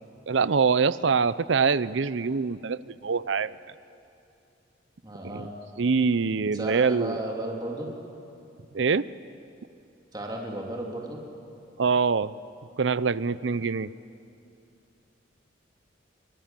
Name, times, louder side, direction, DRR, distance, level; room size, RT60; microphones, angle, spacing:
voice 1, 0.3-3.5 5.2-5.5 5.8-7.2 8.7-9.1 11.8-12.3 12.8-13.9, right 5 dB, 65° right, 17 dB, 0.6 m, -24 dB
voice 2, 5.0-5.5 6.5-7.9 10.1-11.2, right 1 dB, 20° right, -1 dB, 3.1 m, -34 dB
27.5 x 23.5 x 7.6 m, 2.7 s
head